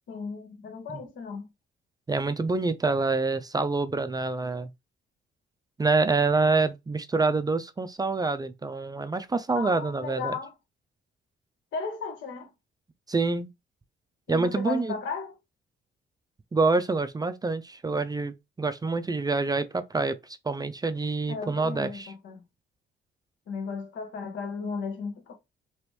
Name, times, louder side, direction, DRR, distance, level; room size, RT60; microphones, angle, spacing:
voice 1, 0.1-1.5 9.5-10.5 11.7-12.5 14.3-15.3 21.3-22.4 23.5-25.3, left 5 dB, 75° left, 1.2 m, -35 dB
voice 2, 2.1-4.7 5.8-10.3 13.1-13.5 14.3-14.9 16.5-22.1, right 3 dB, 20° right, 0.4 m, -26 dB
3.0 x 3.0 x 3.2 m
cardioid pair, 90°, 20 cm